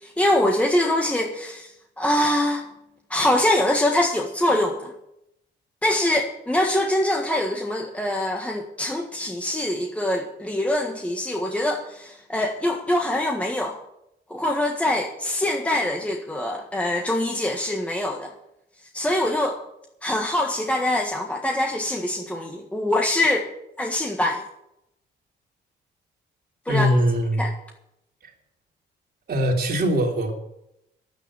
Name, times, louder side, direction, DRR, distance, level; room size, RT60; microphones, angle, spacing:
voice 1, 0.0-2.6 3.1-4.9 5.8-13.8 14.3-18.3 18.9-19.6 20.0-23.5 23.8-24.4 26.6-26.9 27.4-27.5, left 1 dB, 5° left, 1 dB, 1.6 m, -24 dB
voice 2, 26.7-27.4 28.2-28.3 29.3-30.3, equal, 50° right, 0 dB, 3.4 m, -21 dB
10.5 x 9.4 x 8.3 m, 0.81 s
cardioid pair, 90°, 20 cm